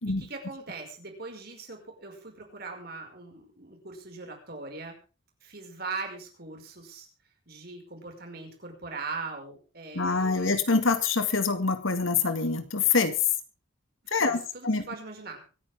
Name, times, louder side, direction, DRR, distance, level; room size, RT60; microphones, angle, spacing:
voice 1, 0.2-5.0 5.4-7.1 7.5-10.6 14.1-15.4, right 4 dB, 50° right, 2 dB, 5.5 m, -40 dB
voice 2, 9.9-13.2 14.1-14.8, left 4 dB, 80° left, 10 dB, 2.0 m, -25 dB
24.5 x 10.0 x 3.6 m, 0.35 s
head